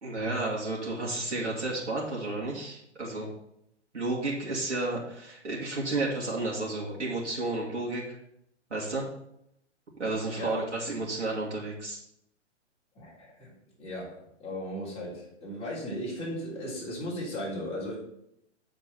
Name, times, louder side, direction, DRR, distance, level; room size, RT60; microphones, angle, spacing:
voice 1, 0.0-3.3 3.9-8.0 8.7-9.0 10.0-12.0, right 2 dB, 70° right, -4 dB, 2.3 m, -32 dB
voice 2, 12.9-18.0, equal, 15° left, -6 dB, 3.5 m, -36 dB
7.8 x 4.4 x 5.7 m, 0.77 s
figure-of-eight pair, 120°, 36 cm